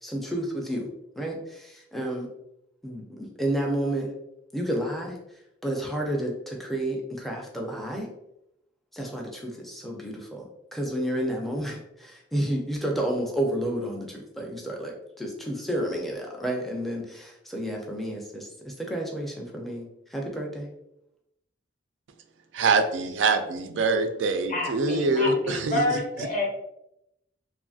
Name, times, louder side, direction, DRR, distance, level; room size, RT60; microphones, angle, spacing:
voice 1, 0.0-0.9 1.2-2.3 2.8-4.1 4.5-5.2 5.6-8.1 8.9-10.5 10.7-20.7, right 1 dB, ahead, 0.4 m, -31 dB
voice 2, 22.5-26.0, right 3 dB, 75° right, 0.4 m, -24 dB
voice 3, 24.5-26.5, left 2 dB, 40° left, 0.9 m, -28 dB
2.8 x 2.5 x 2.3 m
head